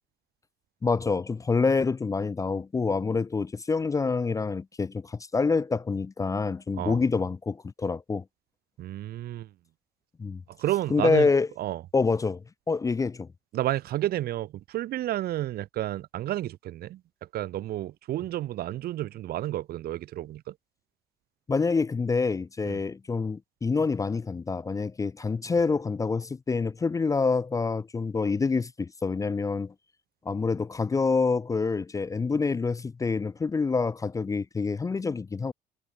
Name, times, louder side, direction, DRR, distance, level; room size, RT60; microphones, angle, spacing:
voice 1, 0.8-8.2 10.2-10.4 10.9-11.5 11.9-13.3 21.5-29.7 30.3-35.5, left 4 dB, 20° left, 0.5 m, -27 dB
voice 2, 8.8-9.5 10.6-11.3 11.6-11.8 13.5-17.0 17.3-20.5 22.6-22.8, right 14 dB, 65° right, 1.0 m, -31 dB
cardioid pair, 110°, 17 cm